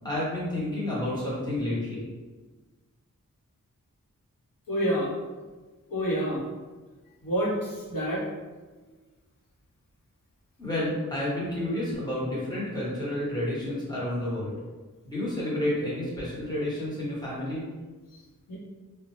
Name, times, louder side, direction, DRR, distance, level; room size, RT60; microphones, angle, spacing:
voice 1, 0.0-2.0 10.6-14.5 15.0-17.7, left 1 dB, 10° left, -8 dB, 1.1 m, -30 dB
voice 2, 4.7-5.1 5.9-6.4 7.2-8.2 18.5-18.6, equal, 80° left, -5 dB, 0.9 m, -27 dB
2.5 x 2.1 x 3.1 m, 1.3 s
wide cardioid pair, 90°, 33 cm